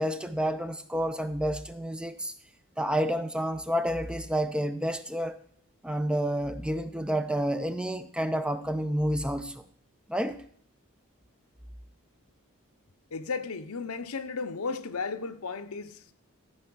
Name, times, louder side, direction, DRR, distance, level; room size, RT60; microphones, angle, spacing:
voice 1, 0.0-2.3 2.8-5.4 5.8-9.6 10.1-10.4, equal, 5° right, 0.4 m, -29 dB
voice 2, 13.1-16.1, left 4 dB, 85° left, 0.8 m, -34 dB
14.0 x 5.5 x 6.2 m
head